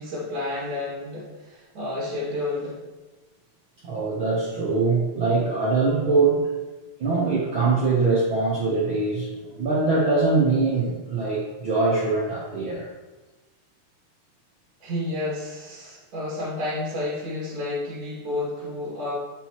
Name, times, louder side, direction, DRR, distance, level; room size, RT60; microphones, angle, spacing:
voice 1, 0.0-2.8 14.8-19.1, left 2 dB, 40° right, -7 dB, 2.6 m, -30 dB
voice 2, 3.8-6.5 7.0-12.9, right 3 dB, 60° right, -5 dB, 1.3 m, -23 dB
8.9 x 5.7 x 3.0 m, 1.2 s
omnidirectional pair, 3.6 m